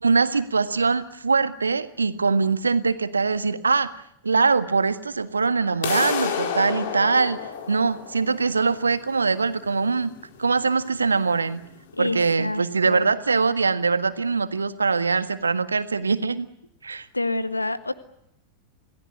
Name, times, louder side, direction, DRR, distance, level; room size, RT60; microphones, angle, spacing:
voice 1, 0.0-3.9 4.2-10.1 10.4-11.6 12.0-16.5 16.8-17.1, right 4 dB, 75° right, 12 dB, 1.6 m, -22 dB
sound 1, 5.8-11.8, left 7 dB, 55° left, 4.3 m, -31 dB
voice 2, 11.9-13.1 17.1-17.9, left 2 dB, 85° left, 12 dB, 1.7 m, -28 dB
28.0 x 18.0 x 9.8 m, 0.79 s
figure-of-eight pair, 90°, 0 cm